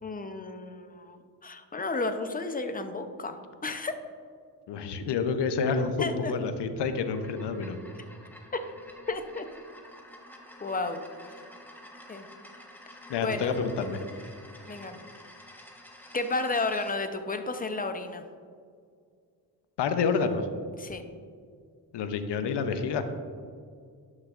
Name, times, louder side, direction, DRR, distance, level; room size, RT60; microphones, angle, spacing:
voice 1, 0.0-4.0 6.0-6.3 9.1-9.5 10.6-11.0 12.1-12.3 13.2-13.6 14.7-15.0 16.1-18.2 20.8-21.0, left 3 dB, 20° left, 8 dB, 0.7 m, -32 dB
voice 2, 4.7-7.8 13.1-14.0 19.8-20.5 21.9-23.0, left 5 dB, 75° left, 9 dB, 0.8 m, -28 dB
sound 1, 6.8-17.0, left 1 dB, 5° left, 1.2 m, -50 dB
11.5 x 6.4 x 2.5 m, 2.1 s
cardioid pair, 65°, 42 cm